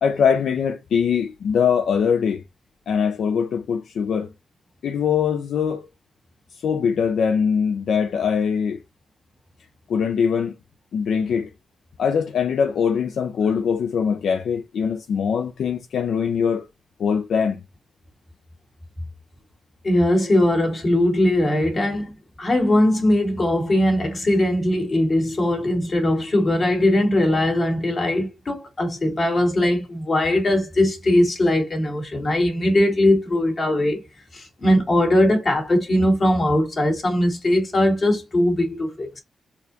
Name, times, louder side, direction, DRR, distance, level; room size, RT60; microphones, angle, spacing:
voice 1, 0.0-2.4 2.9-4.3 4.8-5.9 6.6-8.8 9.9-10.5 10.9-11.5 12.0-16.6 17.0-17.6, left 6 dB, 80° left, 0.3 m, -22 dB
voice 2, 19.8-34.0 34.3-39.2, left 1 dB, 45° left, 1.7 m, -20 dB
4.0 x 2.8 x 2.6 m
cardioid pair, 90°, 0 cm